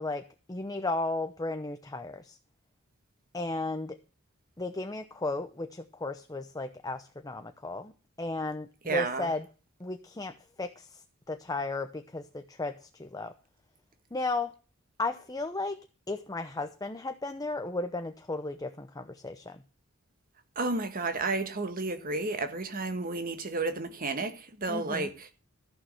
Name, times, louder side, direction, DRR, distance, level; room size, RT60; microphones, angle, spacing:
voice 1, 0.0-2.4 3.3-4.0 4.6-7.9 8.2-9.5 9.8-11.0 11.3-13.3 14.1-14.5 15.0-15.8 16.1-19.6 24.7-25.1, left 2 dB, 20° left, 0.8 m, -34 dB
voice 2, 8.8-9.3 20.5-25.3, right 3 dB, 45° right, 1.7 m, -32 dB
14.0 x 6.5 x 7.8 m
head